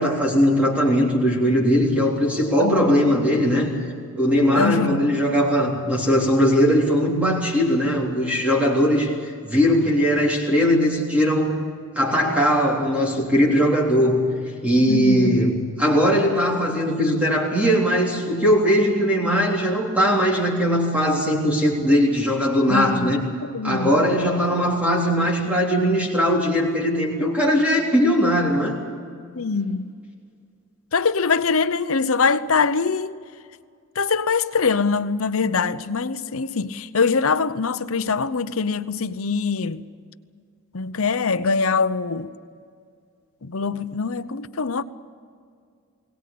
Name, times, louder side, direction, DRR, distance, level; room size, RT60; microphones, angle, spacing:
voice 1, 0.0-3.7 4.1-9.1 9.4-11.6 12.0-14.3 14.6-23.2 23.6-28.8, equal, 5° right, 3.5 m, -20 dB
voice 2, 2.6-3.1 4.5-5.1 14.9-15.5 22.7-23.2 23.4-24.1 29.3-29.9 30.9-33.2 34.0-39.8 40.7-42.3 43.4-44.8, left 5 dB, 70° left, 0.8 m, -23 dB
22.0 x 18.5 x 8.6 m
head